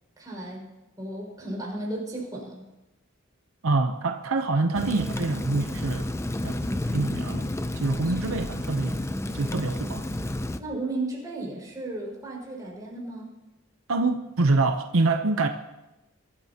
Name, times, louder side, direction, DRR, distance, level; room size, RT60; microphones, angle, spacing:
voice 1, 0.2-0.6 1.0-2.6 10.6-13.4, right 2 dB, 20° right, -5 dB, 5.6 m, -34 dB
voice 2, 3.6-6.1 6.4-7.5 7.7-9.0 9.3-10.1 13.9-15.5, right 3 dB, 80° right, 6 dB, 0.7 m, -26 dB
Rain, 4.7-10.6, left 1 dB, 15° left, 0.5 m, -31 dB
23.0 x 13.0 x 2.9 m, 1.0 s
head